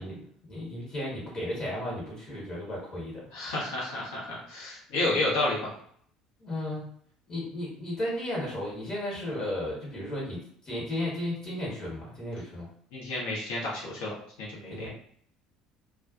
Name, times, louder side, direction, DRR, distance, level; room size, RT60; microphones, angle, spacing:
voice 1, 0.0-3.3 5.0-5.1 6.4-6.8 7.3-12.7 14.7-14.9, left 1 dB, 35° left, -4 dB, 1.2 m, -34 dB
voice 2, 3.3-5.7 12.9-14.9, left 2 dB, 60° left, -4 dB, 1.0 m, -31 dB
2.4 x 2.3 x 2.5 m, 0.62 s
figure-of-eight pair, 60°, 3 cm